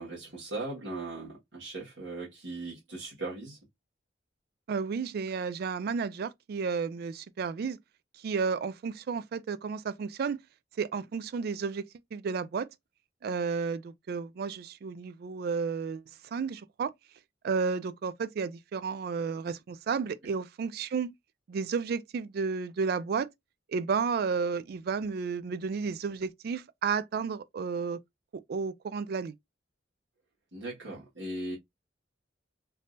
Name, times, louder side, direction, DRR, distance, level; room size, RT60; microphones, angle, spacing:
voice 1, 0.0-3.6 30.5-31.6, right 2 dB, 80° right, 1.5 m, -38 dB
voice 2, 4.7-7.8 8.2-10.4 10.8-11.9 12.1-12.7 13.2-16.9 17.4-21.1 21.5-23.3 23.7-28.0 28.3-29.3, right 5 dB, 55° right, 0.3 m, -32 dB
3.6 x 2.7 x 2.5 m
head